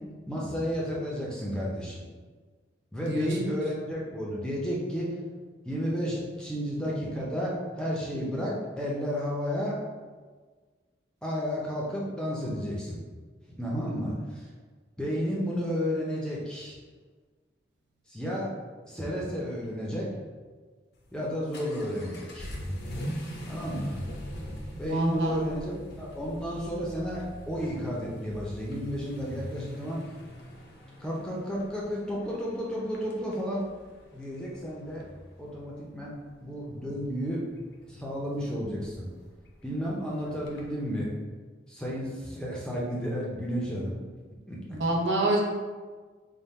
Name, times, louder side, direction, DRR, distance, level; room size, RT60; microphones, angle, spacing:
voice 1, 0.3-2.0 2.9-5.1 5.6-9.8 11.2-13.0 13.6-14.5 15.0-16.8 18.1-18.5 18.8-20.1 21.1-22.5 23.4-23.9 24.8-30.0 31.0-33.6 34.1-35.1 35.4-37.4 37.9-39.1 39.6-41.1 41.7-44.0 44.5-44.6, equal, 5° left, -5 dB, 0.6 m, -32 dB
Vehicle / Accelerating revving vroom, 20.9-40.7, equal, 60° left, 0.6 m, -42 dB
voice 2, 24.7-25.4 44.7-45.4, right 1 dB, 75° right, -1 dB, 0.7 m, -27 dB
3.5 x 2.1 x 4.1 m, 1.4 s
head